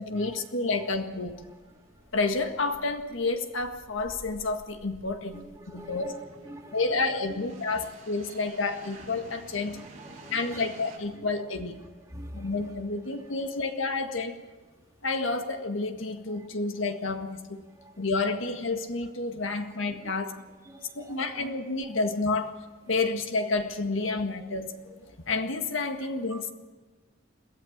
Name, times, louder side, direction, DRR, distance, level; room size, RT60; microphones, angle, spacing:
voice 1, 0.0-1.4 2.1-6.1 6.7-9.8 10.3-11.8 12.3-14.4 15.0-17.6 18.0-20.3 21.0-22.5 22.9-26.5, left 3 dB, 75° left, 6 dB, 1.8 m, -30 dB
sound 1, 1.2-11.0, right 2 dB, 35° right, 5.7 m, -51 dB
voice 2, 5.3-7.4 7.7-8.0 8.3-8.4 9.7-10.6 11.1-11.3 12.1-12.7 16.3-16.5 17.6-18.1 19.9-21.5 26.3-26.5, right 1 dB, 15° right, 1 dB, 2.4 m, -47 dB
22.5 x 16.0 x 7.3 m, 1.3 s
head